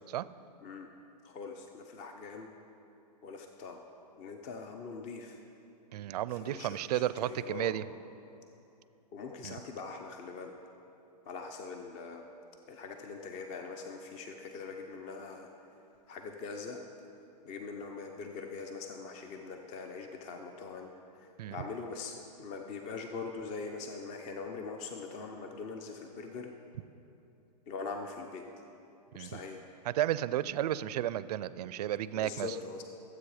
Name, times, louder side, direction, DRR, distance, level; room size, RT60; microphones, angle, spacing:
voice 1, 0.6-0.9 1.2-2.5 3.2-3.8 4.1-5.4 6.3-7.7 9.1-10.5 11.2-12.2 12.7-15.5 16.1-16.8 17.4-26.5 27.7-28.5 29.1-29.6 32.2-32.8, left 4 dB, 35° left, 4 dB, 0.7 m, -42 dB
voice 2, 5.9-7.8 9.4-9.5 21.4-21.6 29.1-29.4 30.0-32.5, right 12 dB, 70° right, 16 dB, 0.4 m, -33 dB
13.0 x 7.9 x 4.9 m, 2.9 s
hypercardioid pair, 130°, 21 cm